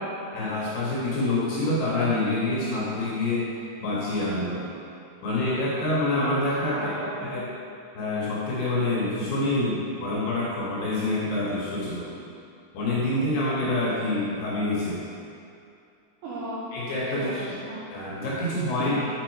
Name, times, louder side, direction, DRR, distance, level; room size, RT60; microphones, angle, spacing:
voice 1, 0.3-3.5 3.8-4.7 5.2-6.9 7.3-7.4 8.0-12.1 12.7-15.0 16.7-17.6 17.9-19.1, left 2 dB, 70° left, -6 dB, 2.6 m, -26 dB
voice 2, 6.7-7.4 16.2-16.7 17.0-17.8 18.8-19.0, right 1 dB, 90° right, -8 dB, 2.2 m, -35 dB
7.5 x 4.9 x 4.6 m, 2.5 s
omnidirectional pair, 5.6 m